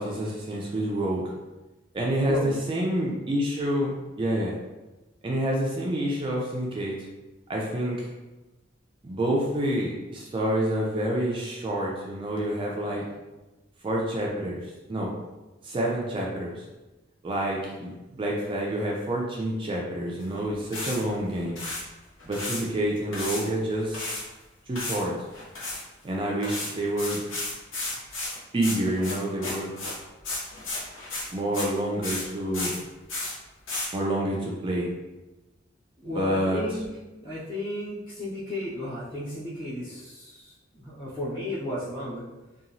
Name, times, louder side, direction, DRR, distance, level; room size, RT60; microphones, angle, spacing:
voice 1, 0.0-1.3 1.9-4.6 5.2-7.0 7.5-8.1 9.0-13.1 13.8-15.1 15.6-16.6 17.2-21.6 22.2-24.0 24.7-25.1 26.0-27.2 28.5-29.7 31.3-32.7 33.9-34.9 36.0-36.8, right 1 dB, 25° right, -3 dB, 0.3 m, -28 dB
voice 2, 2.3-2.6 36.0-36.9 37.2-42.2, left 1 dB, 25° left, -12 dB, 0.9 m, -34 dB
sound 1, 20.2-20.3 20.7-21.0 21.4-21.8 22.2-22.6 23.1-24.2 24.7-25.0 25.3-25.8 26.4-31.8 32.0-32.2 32.5-32.8 33.1-33.3 33.7-33.9, left 2 dB, 75° left, 0.9 m, -33 dB
2.9 x 2.3 x 2.5 m, 1.1 s
head